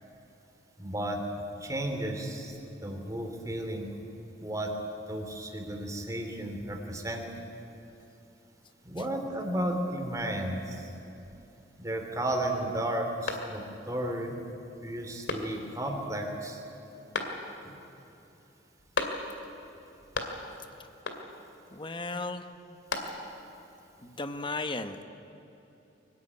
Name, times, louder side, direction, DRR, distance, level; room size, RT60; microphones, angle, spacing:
voice 1, 0.8-1.2 1.6-2.5 2.8-3.9 4.4-4.7 5.1-7.3 8.8-10.9 11.8-13.6 13.9-14.4 14.8-16.6, right 1 dB, 20° right, 3 dB, 2.8 m, -33 dB
sound 1, 13.2-13.9 14.4-14.5 15.2-15.9 17.1-17.8 18.9-19.6 19.8-20.6 21.0-21.5 22.5-23.5, left 3 dB, 70° left, 2.3 m, -36 dB
voice 2, 21.7-22.5 24.0-25.0, left 3 dB, 25° left, 9 dB, 1.1 m, -35 dB
24.0 x 15.5 x 9.6 m, 2.9 s
head